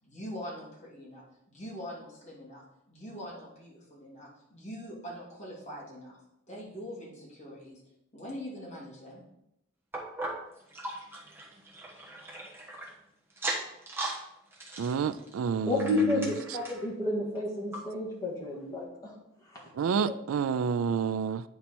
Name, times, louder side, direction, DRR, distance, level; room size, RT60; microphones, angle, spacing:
voice 1, 0.0-6.2 6.5-7.8 8.1-9.2, equal, 35° left, -5 dB, 2.6 m, -43 dB
sound 1, 9.9-12.9 13.3-14.2 14.5-16.9 17.4-17.5 17.7-17.8 18.5-18.6, right 2 dB, 10° right, 1.2 m, -38 dB
voice 2, 14.8-16.3 19.7-21.4, right 6 dB, 85° right, 14 dB, 0.4 m, -29 dB
voice 3, 15.7-19.1 19.5-19.6, left 2 dB, 15° left, -3 dB, 1.8 m, -30 dB
9.2 x 4.3 x 4.3 m, 0.83 s
head